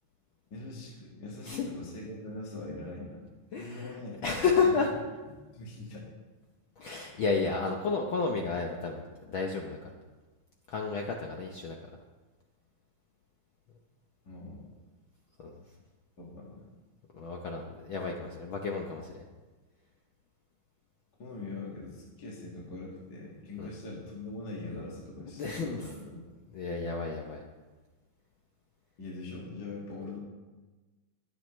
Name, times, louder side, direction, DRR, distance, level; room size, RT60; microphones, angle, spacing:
voice 1, 0.5-3.2 3.6-4.2 4.6-4.8 5.5-6.1 14.2-14.6 16.2-16.6 21.2-26.3 29.0-30.2, left 2 dB, 35° left, -4 dB, 2.0 m, -42 dB
voice 2, 3.5-4.9 6.8-9.8 10.7-11.8 15.4-15.6 17.1-19.2 23.6-23.7 25.4-25.9 26.5-27.4, left 4 dB, 85° left, 1 dB, 1.1 m, -31 dB
22.0 x 7.9 x 3.2 m, 1.2 s
omnidirectional pair, 3.5 m